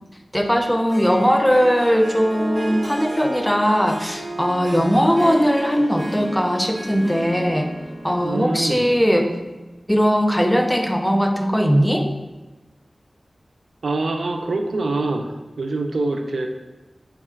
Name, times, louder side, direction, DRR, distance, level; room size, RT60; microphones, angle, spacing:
voice 1, 0.3-7.7 8.0-9.3 9.9-12.1, equal, 5° left, 4 dB, 0.5 m, -19 dB
Harp, 0.7-9.6, right 1 dB, 55° right, 0.9 m, -33 dB
voice 2, 4.8-5.1 8.2-8.9 13.8-16.5, right 2 dB, 90° right, 4 dB, 0.4 m, -25 dB
4.6 x 2.3 x 4.3 m, 1.1 s
wide cardioid pair, 60°, 0 cm